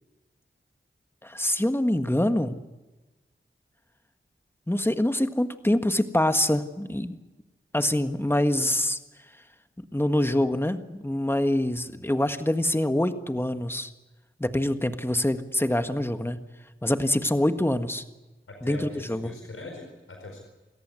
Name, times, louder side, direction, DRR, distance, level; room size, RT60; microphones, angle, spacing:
voice 1, 1.2-2.6 4.7-7.2 7.7-9.0 9.9-13.9 14.4-16.4 16.8-18.0 18.6-18.8 19.1-19.3, left 1 dB, 10° left, 8 dB, 1.6 m, -25 dB
voice 2, 18.5-20.4, left 2 dB, 90° left, 2 dB, 4.6 m, -41 dB
27.0 x 14.0 x 9.7 m, 1.1 s
cardioid pair, 45°, 21 cm